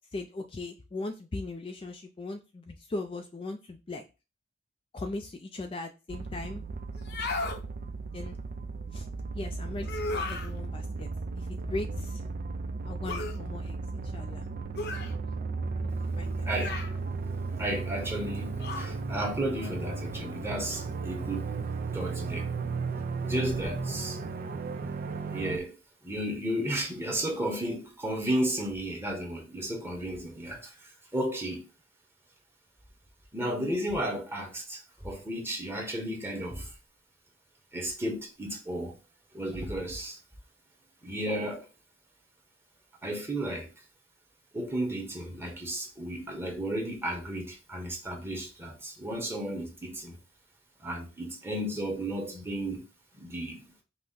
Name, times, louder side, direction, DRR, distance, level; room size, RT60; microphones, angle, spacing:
voice 1, 0.1-4.0 4.9-6.6 8.1-8.4 8.9-9.1 9.3-11.1 11.3-12.2 12.8-14.5 15.8-15.9 16.2-16.5, left 2 dB, 25° left, 0.3 m, -39 dB
sound 1, 6.1-25.6, right 4 dB, 50° right, 0.4 m, -35 dB
sound 2, 7.0-7.6 9.8-10.5 13.1-13.4 14.8-15.1 16.5-17.0 18.6-19.0, left 3 dB, 55° left, 0.7 m, -34 dB
voice 2, 16.4-16.7 17.6-21.5 21.9-22.5 23.2-24.2 25.3-25.8 26.0-30.7 31.1-31.6 33.3-36.7 37.7-39.0 39.3-40.2 41.0-41.7 43.0-43.7 44.5-50.2 50.8-52.8 53.1-53.6, right 1 dB, 10° right, 1.1 m, -33 dB
5.5 x 2.0 x 4.0 m
head